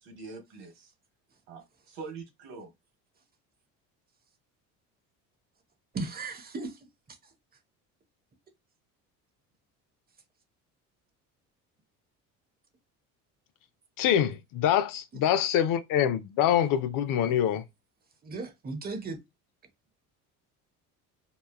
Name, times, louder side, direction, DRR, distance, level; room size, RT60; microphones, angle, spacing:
voice 1, 0.0-0.9 1.5-2.7, right 4 dB, 80° right, 1.3 m, -44 dB
voice 2, 5.9-6.8 7.1-7.2 18.2-19.2, right 3 dB, 25° right, 0.8 m, -36 dB
voice 3, 14.0-17.6, left 10 dB, 55° left, 0.5 m, -25 dB
3.0 x 2.2 x 2.3 m
supercardioid pair, 80°, 39 cm